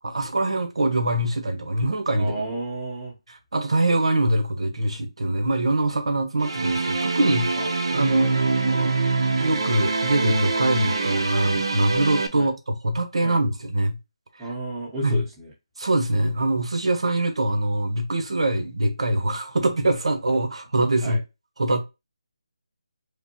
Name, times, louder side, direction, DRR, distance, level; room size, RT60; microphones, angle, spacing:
voice 1, 0.0-2.3 3.3-7.5 7.9-9.0 9.4-14.0 15.0-15.2 15.8-21.2 21.6-21.8, right 1 dB, 70° right, 1.1 m, -23 dB
voice 2, 2.2-3.1 7.6-7.7 12.3-12.5 13.2-13.4 14.4-15.5 21.0-21.2, right 1 dB, 5° right, 0.9 m, -32 dB
sound 1, 6.4-12.3, right 3 dB, 55° right, 0.8 m, -24 dB
5.1 x 2.1 x 2.9 m
figure-of-eight pair, 170°, 3 cm